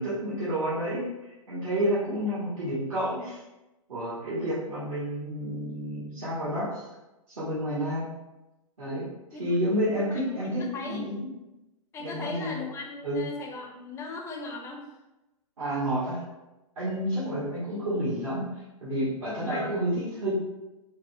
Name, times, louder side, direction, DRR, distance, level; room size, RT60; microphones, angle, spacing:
voice 1, 0.0-3.4 3.9-6.9 7.3-8.1 8.8-9.1 9.4-11.3 12.0-12.5 13.0-13.2 15.6-16.2 16.8-20.3, equal, 70° right, -10 dB, 1.2 m, -30 dB
voice 2, 10.1-11.1 11.9-14.8 19.5-19.8, left 3 dB, 15° left, 1 dB, 0.5 m, -38 dB
4.0 x 2.1 x 2.6 m, 1.0 s
hypercardioid pair, 115°, 18 cm